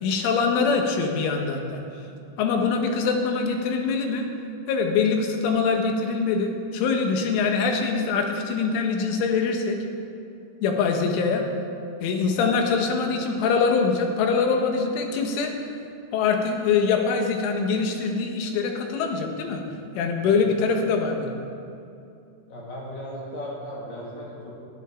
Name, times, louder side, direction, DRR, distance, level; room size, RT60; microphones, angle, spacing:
voice 1, 0.0-1.8 2.4-4.3 4.7-9.8 10.6-11.5 12.0-15.5 16.1-19.6 20.0-21.4, left 5 dB, 85° left, 3 dB, 3.8 m, -23 dB
voice 2, 22.5-24.5, equal, 60° left, -4 dB, 4.0 m, -36 dB
21.0 x 13.0 x 3.8 m, 2.6 s
omnidirectional pair, 5.5 m